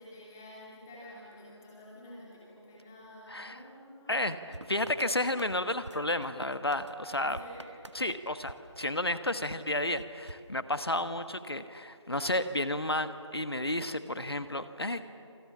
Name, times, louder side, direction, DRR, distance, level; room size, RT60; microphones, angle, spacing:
voice 1, 0.0-4.2 7.1-8.0, left 1 dB, 5° left, -6 dB, 2.7 m, -49 dB
voice 2, 3.3-3.6 4.1-7.4 7.9-15.1, left 1 dB, 55° left, 11 dB, 1.3 m, -32 dB
sound 1, 4.5-9.4 9.9-11.2, right 1 dB, 75° right, 1.3 m, -50 dB
28.0 x 26.5 x 7.3 m, 2.7 s
figure-of-eight pair, 170°, 15 cm